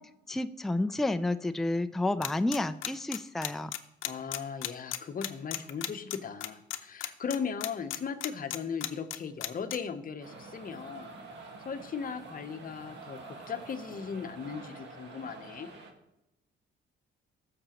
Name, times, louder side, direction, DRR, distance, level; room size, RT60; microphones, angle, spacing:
voice 1, 0.3-3.7, left 2 dB, ahead, 10 dB, 0.4 m, -30 dB
sound 1, 2.2-9.8, left 13 dB, 80° left, 0.7 m, -34 dB
voice 2, 4.0-11.1 11.6-15.7, left 6 dB, 45° left, 9 dB, 0.8 m, -37 dB
sound 2, 10.2-15.9, right 3 dB, 65° right, 1.7 m, -47 dB
15.0 x 6.8 x 3.0 m, 0.90 s
cardioid pair, 90°, 20 cm